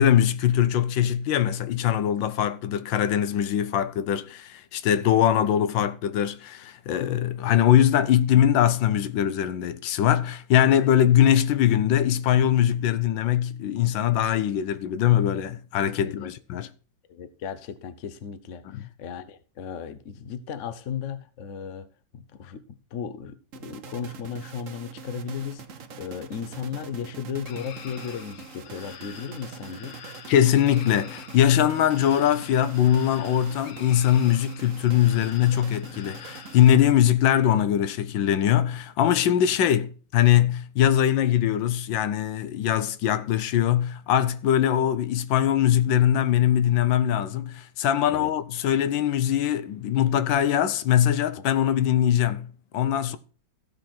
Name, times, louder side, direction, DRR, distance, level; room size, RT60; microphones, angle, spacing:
voice 1, 0.0-16.7 18.6-18.8 30.3-52.5 52.7-53.2, left 10 dB, 85° left, 1.5 m, -22 dB
voice 2, 17.1-21.9 22.1-25.6 26.0-30.0 48.1-48.3 50.4-50.5 51.4-51.5, left 7 dB, 50° left, 1.1 m, -35 dB
sound 1, 23.5-37.2, right 5 dB, 55° right, 1.0 m, -43 dB
sound 2, 27.4-36.7, left 9 dB, 65° left, 1.3 m, -46 dB
15.0 x 5.6 x 4.3 m
omnidirectional pair, 2.0 m